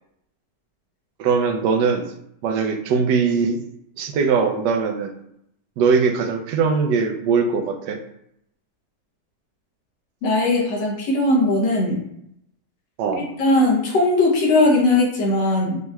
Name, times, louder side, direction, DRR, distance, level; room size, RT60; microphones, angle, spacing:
voice 1, 1.2-2.1 2.4-3.6 4.0-5.1 5.8-8.0 13.0-13.3, right 5 dB, 80° right, 5 dB, 1.2 m, -21 dB
voice 2, 10.2-12.0 13.4-15.8, left 2 dB, 80° left, -1 dB, 1.6 m, -19 dB
5.3 x 2.9 x 2.3 m, 0.77 s
omnidirectional pair, 1.9 m